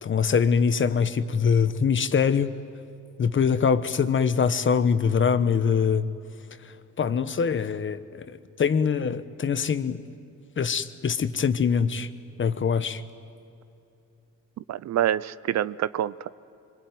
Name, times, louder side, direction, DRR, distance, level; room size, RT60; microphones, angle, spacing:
voice 1, 0.0-2.6 3.2-6.1 7.0-8.0 8.6-10.0 10.6-12.1 12.4-13.0, left 6 dB, 40° left, 12 dB, 1.2 m, -23 dB
voice 2, 14.7-16.3, right 11 dB, 60° right, 17 dB, 0.6 m, -26 dB
25.0 x 23.5 x 9.3 m, 2.8 s
cardioid pair, 90°, 30 cm